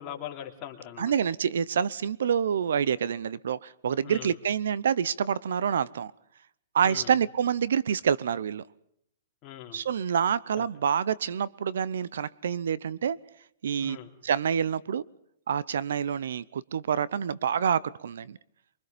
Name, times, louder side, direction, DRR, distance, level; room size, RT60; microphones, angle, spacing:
voice 1, 0.0-1.1 4.0-4.3 6.8-7.1 9.4-9.8 10.6-10.7 13.8-14.1, left 11 dB, 30° left, 1 dB, 3.2 m, -41 dB
voice 2, 1.0-6.1 6.7-8.6 9.7-13.2 13.6-14.0 14.2-15.0 15.5-18.4, right 8 dB, 80° right, 21 dB, 0.8 m, -27 dB
24.5 x 23.5 x 5.2 m, 0.72 s
hypercardioid pair, 160°, 0 cm